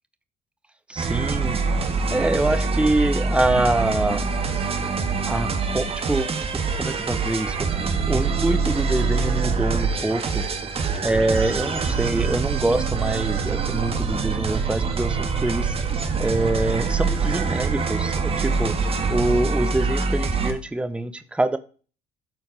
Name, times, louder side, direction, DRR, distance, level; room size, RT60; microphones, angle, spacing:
voice 1, 0.9-1.6 2.1-4.5 4.9-5.5 5.7-6.5 6.7-7.6 8.1-10.4 11.0-15.7 16.2-18.8 19.1-21.6, right 2 dB, 5° right, 0.8 m, -25 dB
sound 1, 1.0-20.5, right 4 dB, 35° right, 1.5 m, -24 dB
12.0 x 4.5 x 4.7 m
cardioid pair, 110°, 17 cm